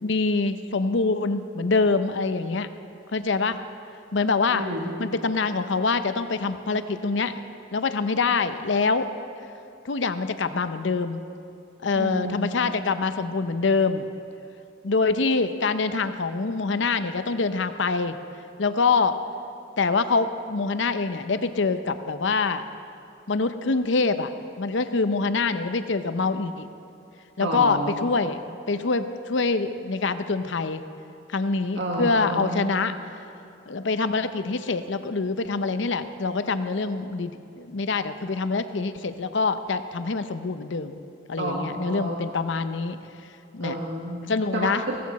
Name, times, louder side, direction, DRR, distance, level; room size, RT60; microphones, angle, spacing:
voice 1, 0.0-2.7 3.1-3.6 4.1-4.6 5.0-7.4 7.7-9.1 9.8-11.2 11.8-14.1 14.8-18.2 18.6-19.2 19.8-22.6 23.3-24.3 24.6-26.7 27.4-30.8 31.3-32.9 33.7-41.0 41.3-43.0 43.5-43.8 44.3-44.8, left 4 dB, 70° left, 10 dB, 0.7 m, -25 dB
voice 2, 4.5-5.0 11.9-12.5 27.4-28.0 31.7-32.6 41.4-42.2 43.6-45.0, right 1 dB, 75° right, -2 dB, 1.4 m, -30 dB
17.0 x 14.5 x 4.2 m, 2.6 s
head